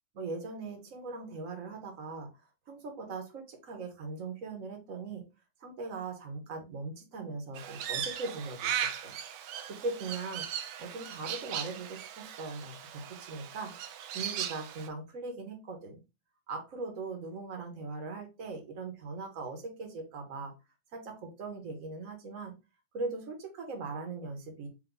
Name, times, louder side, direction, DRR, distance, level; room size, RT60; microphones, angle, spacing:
voice 1, 0.1-2.3 2.7-5.2 5.6-9.1 9.8-10.5 10.8-13.7 14.1-16.0 16.5-20.5 20.9-22.5 22.9-24.7, right 3 dB, 45° right, 3 dB, 1.4 m, -40 dB
Crow, 7.6-14.9, right 9 dB, 75° right, 1.0 m, -38 dB
4.7 x 2.8 x 3.9 m, 0.26 s
omnidirectional pair, 2.4 m